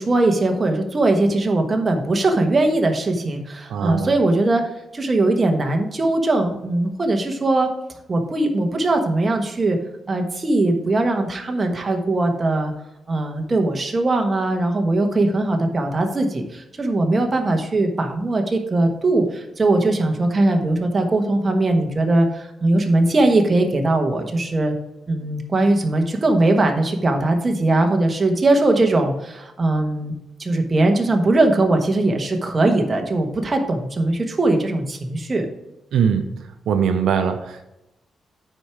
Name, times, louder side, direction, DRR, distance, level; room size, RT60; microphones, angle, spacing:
voice 1, 0.0-4.6 4.9-7.7 8.1-9.8 10.1-12.7 13.1-24.7 25.1-30.1 30.4-35.5, right 2 dB, 30° right, 3 dB, 1.2 m, -20 dB
voice 2, 3.7-4.1 35.9-36.3 36.7-37.7, right 7 dB, 80° right, 7 dB, 0.7 m, -21 dB
9.2 x 4.5 x 4.7 m, 0.91 s
cardioid pair, 115°, 0 cm